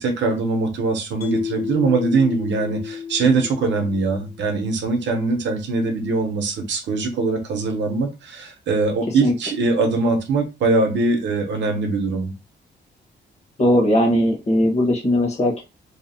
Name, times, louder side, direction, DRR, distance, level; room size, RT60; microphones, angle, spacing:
voice 1, 0.0-12.3, right 3 dB, 75° right, 5 dB, 0.7 m, -22 dB
Mallet percussion, 1.2-4.5, left 7 dB, 55° left, 0.4 m, -31 dB
voice 2, 13.6-15.6, left 1 dB, 35° left, 0 dB, 1.0 m, -18 dB
2.7 x 2.0 x 2.7 m, 0.28 s
wide cardioid pair, 155°, 19 cm